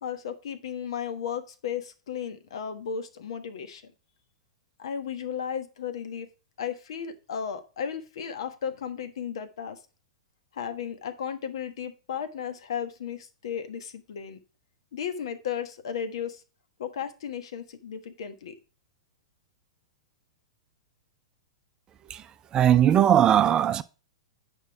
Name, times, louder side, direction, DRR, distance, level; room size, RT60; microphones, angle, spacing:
voice 1, 0.0-3.8 4.8-6.3 6.6-9.8 10.5-14.4 14.9-16.4 16.8-18.6, left 8 dB, 65° left, 1.4 m, -34 dB
voice 2, 22.5-23.8, right 10 dB, 25° right, 0.5 m, -19 dB
8.8 x 5.3 x 4.9 m
hypercardioid pair, 105°, 3 cm